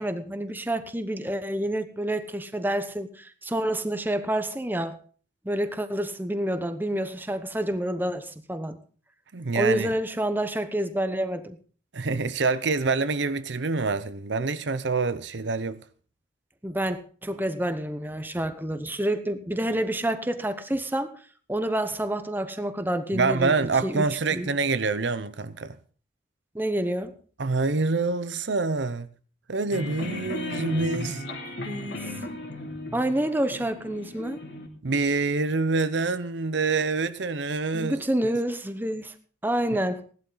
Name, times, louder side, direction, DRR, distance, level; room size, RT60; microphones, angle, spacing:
voice 1, 0.0-5.0 5.4-8.8 9.5-11.6 16.6-21.1 21.5-23.5 23.8-24.5 26.5-27.2 31.6-32.1 32.9-34.4 37.7-39.1 39.4-40.1, right 1 dB, 10° right, 0.9 m, -28 dB
voice 2, 9.3-9.9 11.9-15.8 23.1-25.8 27.4-29.1 29.5-31.2 34.8-38.0, right 4 dB, 70° right, 0.8 m, -26 dB
sound 1, 29.7-34.7, left 1 dB, 65° left, 2.9 m, -35 dB
17.0 x 11.5 x 3.9 m
head